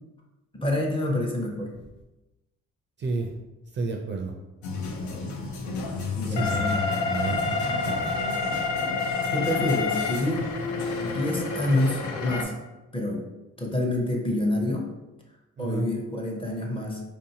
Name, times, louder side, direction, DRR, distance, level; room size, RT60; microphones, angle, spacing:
voice 1, 0.5-1.8 6.1-7.1 9.3-10.5 10.9-12.5 12.9-13.3 13.6-14.9 15.6-17.0, left 1 dB, 15° left, 0 dB, 0.7 m, -27 dB
voice 2, 3.0-3.3 3.7-4.3 6.2-6.6 6.9-8.2 15.6-15.9, right 3 dB, 35° right, 2 dB, 0.4 m, -31 dB
sound 1, 4.6-12.4, left 4 dB, 70° left, 0.6 m, -28 dB
4.3 x 2.7 x 2.7 m, 1.0 s
cardioid pair, 90°, 30 cm